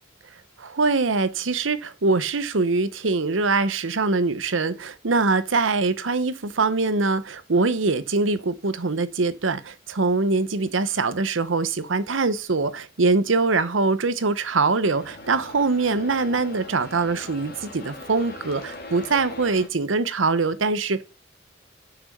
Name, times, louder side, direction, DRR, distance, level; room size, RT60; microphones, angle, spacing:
voice 1, 0.6-21.0, right 3 dB, 80° right, 0.9 m, -23 dB
sound 1, 14.8-19.7, left 2 dB, 55° left, 1.7 m, -40 dB
6.1 x 6.1 x 5.4 m
head